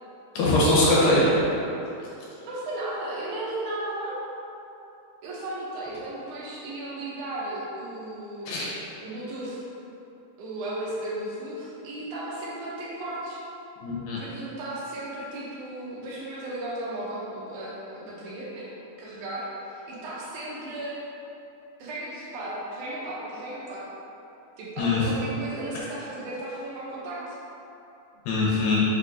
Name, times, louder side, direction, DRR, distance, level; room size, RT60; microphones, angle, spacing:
voice 1, 0.4-1.3 8.5-8.7 13.8-14.2 24.8-25.1 28.3-28.8, left 2 dB, 85° left, -6 dB, 2.4 m, -22 dB
voice 2, 2.4-4.2 5.2-9.6 10.4-13.4 14.2-18.7 19.0-21.0 21.8-23.9 24.6-27.4, right 1 dB, 75° right, -6 dB, 2.0 m, -35 dB
5.4 x 2.3 x 3.8 m, 2.9 s
omnidirectional pair, 4.0 m